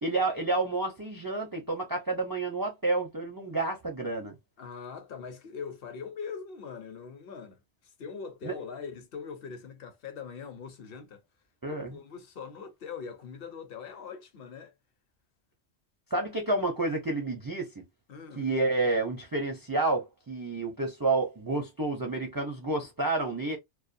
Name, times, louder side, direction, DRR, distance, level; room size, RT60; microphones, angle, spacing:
voice 1, 0.0-4.3 8.4-8.5 11.6-12.0 16.1-17.8 18.4-23.6, right 2 dB, 30° right, 0.4 m, -30 dB
voice 2, 4.6-11.2 11.7-14.7 18.1-18.5, left 6 dB, 60° left, 0.8 m, -42 dB
2.3 x 2.2 x 2.6 m
omnidirectional pair, 1.2 m